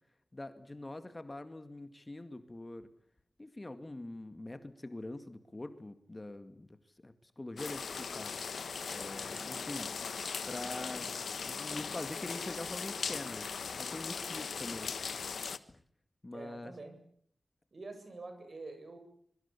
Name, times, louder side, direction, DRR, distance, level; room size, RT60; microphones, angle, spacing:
voice 1, 0.3-2.9 3.4-6.7 7.0-8.3 8.9-9.9 10.5-11.1 11.5-13.5 13.8-14.9 15.7-15.8 16.2-16.7, left 2 dB, 25° left, 9 dB, 2.1 m, -44 dB
sound 1, 7.6-15.6, left 5 dB, 90° left, 1.3 m, -39 dB
voice 2, 16.3-16.9 17.7-19.0, right 3 dB, 55° right, 7 dB, 7.5 m, -46 dB
25.5 x 23.0 x 8.5 m, 0.64 s
wide cardioid pair, 95°, 0 cm